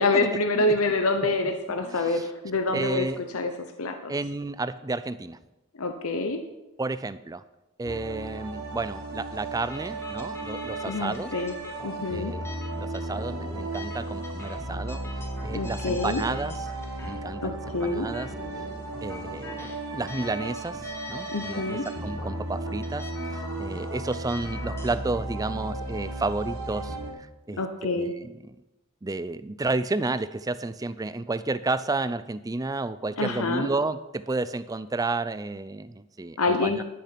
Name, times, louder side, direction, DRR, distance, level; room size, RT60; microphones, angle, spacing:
voice 1, 0.0-3.1 3.3-3.5 3.8-4.1 5.8-6.4 10.9-11.5 11.8-12.3 15.5-16.2 17.4-18.1 21.3-21.8 27.6-28.1 33.2-33.7 36.4-36.8, left 2 dB, 75° left, 6 dB, 0.9 m, -26 dB
voice 2, 1.9-2.3 2.7-3.2 4.1-5.4 6.8-7.4 7.8-11.3 12.1-12.5 12.8-16.6 17.0-18.3 19.0-27.6 27.9-28.6 29.0-36.8, right 3 dB, 15° right, 14 dB, 0.4 m, -31 dB
sound 1, 7.8-27.1, right 2 dB, 90° right, 2.9 m, -35 dB
sound 2, 9.7-25.0, left 2 dB, 10° left, 1.1 m, -44 dB
11.5 x 6.7 x 5.9 m, 0.97 s
head